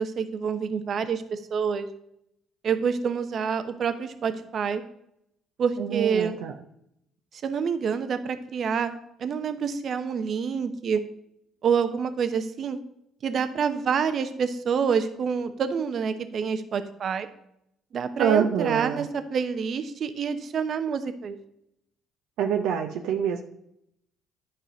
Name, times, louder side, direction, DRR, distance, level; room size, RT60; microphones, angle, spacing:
voice 1, 0.0-1.9 2.6-4.8 5.6-6.4 7.4-11.0 11.6-12.8 13.2-17.3 17.9-21.4, right 6 dB, 60° right, 10 dB, 0.9 m, -27 dB
voice 2, 5.8-6.5 18.2-19.1 22.4-23.4, right 8 dB, 80° right, 4 dB, 0.7 m, -25 dB
10.0 x 4.9 x 6.1 m, 0.77 s
supercardioid pair, 65°, 0 cm